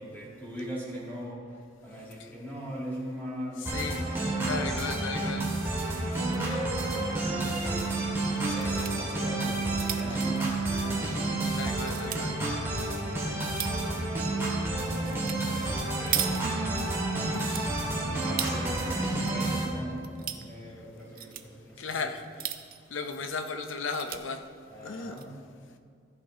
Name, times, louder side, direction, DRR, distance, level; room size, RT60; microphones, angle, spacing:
voice 1, 0.0-5.0 6.3-7.7 8.3-10.5 13.2-13.7 15.1-16.3 17.9-21.8 24.7-25.3, equal, 10° left, 2.5 m, -40 dB
voice 2, 3.6-4.1 4.5-5.6 5.9-6.6 8.1-9.3 10.1-10.2 11.2-12.4 16.8-17.9 20.5-20.8 21.2-21.3 21.8-22.6 22.9-24.5 24.8-25.2, left 4 dB, 80° left, 0.7 m, -37 dB
sound 1, 3.7-19.7, right 2 dB, 15° right, 2.1 m, -30 dB
sound 2, 6.0-6.5 6.8-6.9 7.2-7.3 8.3-8.9 9.5-11.3 11.7-12.2 12.9-13.9 15.1-15.4 15.7-17.0 17.3-18.6 19.0-19.6 19.9-20.4 21.0-21.5 22.2-22.9 23.4-23.5 23.7-24.2 24.9-25.2, right 11 dB, 50° right, 0.5 m, -37 dB
14.5 x 8.0 x 2.8 m
head